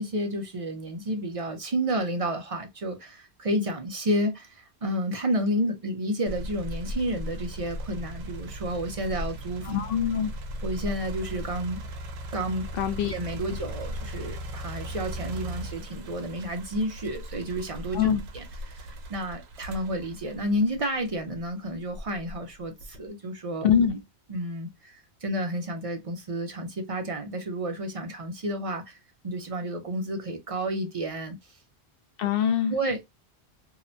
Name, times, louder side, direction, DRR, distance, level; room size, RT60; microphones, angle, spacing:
voice 1, 0.0-9.8 10.6-11.9 12.3-12.6 13.0-23.7 24.3-29.0 29.2-31.6 32.7-33.0, right 1 dB, 50° right, 0.4 m, -31 dB
sound 1, 6.3-21.3 21.9-23.1, equal, 70° right, 0.8 m, -38 dB
voice 2, 9.6-10.3 12.7-13.1 17.9-18.2 23.6-24.0 32.2-32.7, left 8 dB, 65° left, 0.7 m, -24 dB
2.8 x 2.1 x 2.5 m
omnidirectional pair, 1.1 m